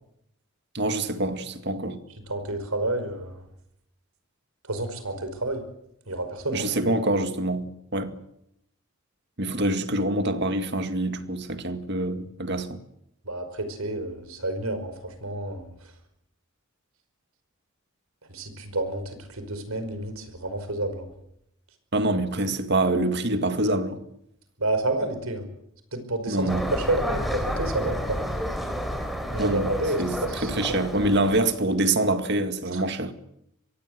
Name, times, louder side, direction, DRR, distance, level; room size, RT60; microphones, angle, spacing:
voice 1, 0.7-2.0 6.5-8.2 9.4-12.8 21.9-24.0 26.3-26.6 29.4-29.7 30.0-33.1, right 2 dB, 50° right, 2.1 m, -25 dB
voice 2, 2.3-3.4 4.6-5.6 6.1-6.8 13.3-15.7 18.3-21.1 24.6-25.5 25.9-28.3 29.3-30.5 32.7-32.8, right 2 dB, 80° right, 5.3 m, -30 dB
sound 1, 26.5-31.6, equal, ahead, 3.7 m, -30 dB
25.0 x 22.5 x 8.1 m
head